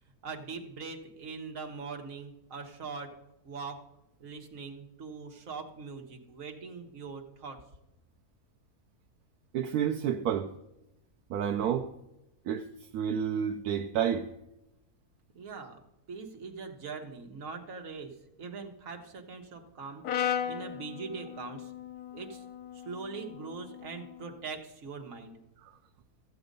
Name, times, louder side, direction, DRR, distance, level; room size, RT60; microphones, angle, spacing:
voice 1, 0.2-3.1 3.4-3.8 4.2-7.6 15.3-15.8 16.1-18.1 18.4-21.7 22.1-22.4 22.7-25.4, right 4 dB, 60° right, 1.6 m, -42 dB
voice 2, 9.5-10.5 11.3-11.9 12.5-12.7 12.9-14.3 25.6-25.7, right 8 dB, 80° right, 1.1 m, -30 dB
Brass instrument, 20.0-24.3, left 9 dB, 80° left, 1.2 m, -37 dB
14.5 x 7.7 x 5.3 m
omnidirectional pair, 1.6 m